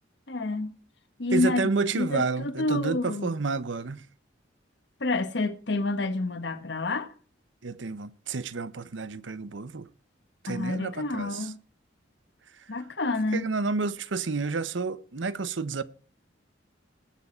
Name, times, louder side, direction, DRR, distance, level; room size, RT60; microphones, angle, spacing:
voice 1, 0.3-0.7 1.2-3.3 5.0-7.1 10.5-11.6 12.7-13.5, left 2 dB, 60° left, 1.2 m, -28 dB
voice 2, 1.3-4.1 7.6-9.9 10.4-11.5 12.6-12.7 13.3-15.8, right 4 dB, 75° right, 0.8 m, -30 dB
20.5 x 7.1 x 4.3 m
head